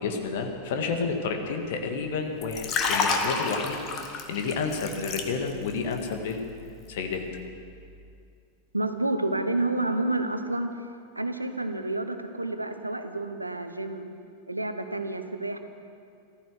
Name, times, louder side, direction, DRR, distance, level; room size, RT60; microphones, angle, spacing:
voice 1, 0.0-3.8 4.1-6.4 6.9-7.2, left 4 dB, 55° left, 4 dB, 1.9 m, -30 dB
Liquid, 2.4-5.7 6.0-6.3, left 4 dB, 35° left, 1.8 m, -29 dB
voice 2, 8.7-10.7 11.1-14.1 14.5-15.6, right 2 dB, 85° right, 8 dB, 1.0 m, -29 dB
15.0 x 14.0 x 6.4 m, 2.4 s
figure-of-eight pair, 90°, 0 cm